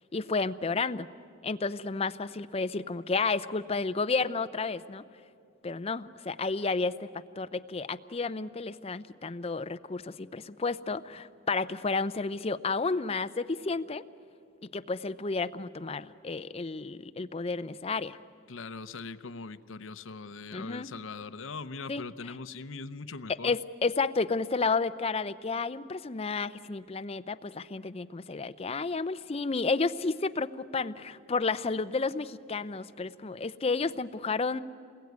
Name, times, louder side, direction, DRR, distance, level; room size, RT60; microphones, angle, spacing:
voice 1, 0.1-1.1 1.4-5.0 5.6-7.1 7.4-14.0 14.7-18.2 20.5-20.9 21.9-22.0 23.4-34.6, left 4 dB, 30° left, 12 dB, 0.5 m, -31 dB
voice 2, 18.5-23.6, left 4 dB, 70° left, 13 dB, 0.8 m, -41 dB
27.5 x 21.0 x 9.5 m, 2.5 s
head